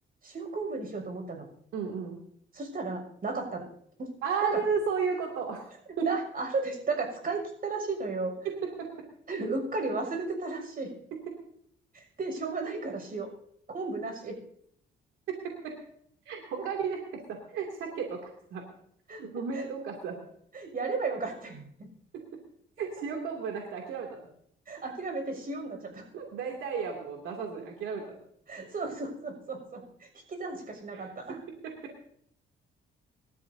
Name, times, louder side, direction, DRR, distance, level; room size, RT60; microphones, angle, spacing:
voice 1, 0.2-1.4 2.5-3.6 4.0-4.1 6.0-8.3 9.3-10.9 11.9-13.3 13.7-14.4 16.6-16.7 19.1-19.2 19.5-19.7 20.5-21.9 24.7-26.0 28.5-31.4, right 3 dB, 45° right, 3 dB, 6.4 m, -34 dB
voice 2, 1.7-2.2 4.2-5.7 6.0-6.1 8.4-8.9 15.3-15.4 15.6-15.7 16.3-18.6 19.2-20.2 22.8-24.3 26.1-28.2 30.9-31.8, right 6 dB, 85° right, 1 dB, 2.7 m, -33 dB
26.0 x 13.0 x 2.8 m, 0.66 s
cardioid pair, 90°, 20 cm